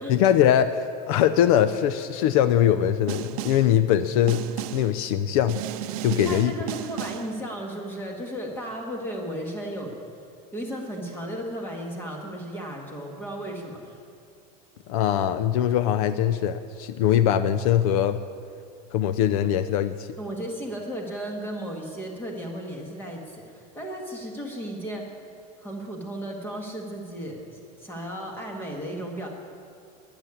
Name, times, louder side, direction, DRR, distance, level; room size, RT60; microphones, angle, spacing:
voice 1, 0.1-4.4 4.7-5.6 6.0-6.5 14.9-18.2 18.9-20.1, left 10 dB, 65° left, 12 dB, 0.6 m, -22 dB
Snare drum, 3.1-3.8 4.3-5.0 5.5-7.4, right 14 dB, 65° right, 0.6 m, -34 dB
voice 2, 6.1-10.0 10.5-14.0 20.2-25.1 25.6-29.3, equal, 10° left, 1 dB, 1.9 m, -35 dB
12.0 x 10.5 x 9.7 m, 2.4 s
cardioid pair, 175°, 19 cm